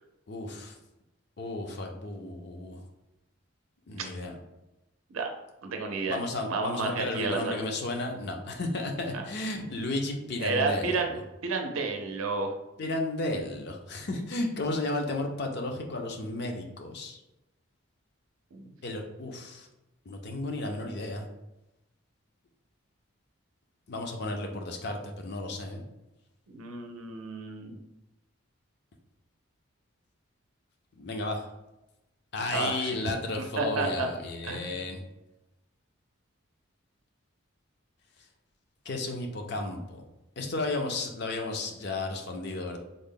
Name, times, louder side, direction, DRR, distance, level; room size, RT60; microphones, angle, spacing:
voice 1, 0.3-0.8 1.4-2.8 3.9-4.3 6.1-11.0 12.8-17.2 18.8-19.7 20.1-21.3 23.9-25.8 30.9-31.5 32.3-35.0 38.9-40.0 40.4-42.8, left 2 dB, 50° left, 3 dB, 0.5 m, -33 dB
voice 2, 5.6-6.2 6.5-7.5 9.1-9.2 10.4-11.2 11.4-12.6 18.5-18.7 26.5-27.8 32.5-33.0 33.4-34.1 34.4-34.8, right 3 dB, 85° right, 4 dB, 0.5 m, -31 dB
3.7 x 2.1 x 3.6 m, 0.95 s
head